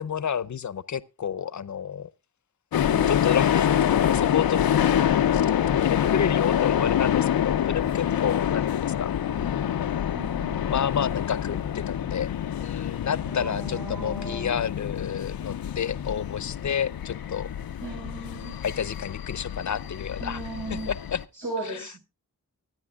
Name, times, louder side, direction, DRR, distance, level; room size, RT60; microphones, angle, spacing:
voice 1, 0.0-2.1 3.1-4.6 5.3-5.4 5.8-9.1 10.7-17.5 18.6-20.4 20.7-21.2 21.7-21.8, left 8 dB, 55° left, 0.7 m, -30 dB
sound 1, 2.7-21.2, left 10 dB, 90° left, 0.6 m, -26 dB
voice 2, 2.8-3.3 9.3-9.7 10.1-10.8 13.3-14.7 17.8-18.6 20.2-20.9 21.3-22.0, right 2 dB, 85° right, 5.1 m, -37 dB
24.0 x 9.4 x 2.4 m
cardioid pair, 60°, 35 cm